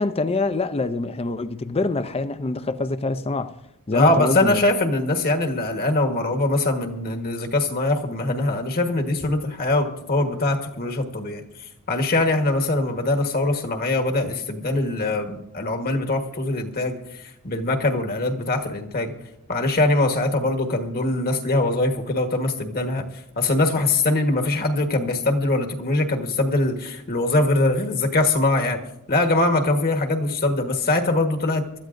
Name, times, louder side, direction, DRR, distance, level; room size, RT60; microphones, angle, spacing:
voice 1, 0.0-3.5 3.9-4.6, left 3 dB, 25° left, 0.5 m, -25 dB
voice 2, 3.9-11.4 11.9-17.0 17.4-19.1 19.5-23.1 23.4-28.8 29.1-31.7, left 2 dB, 45° left, 1.4 m, -22 dB
24.5 x 13.0 x 2.6 m
head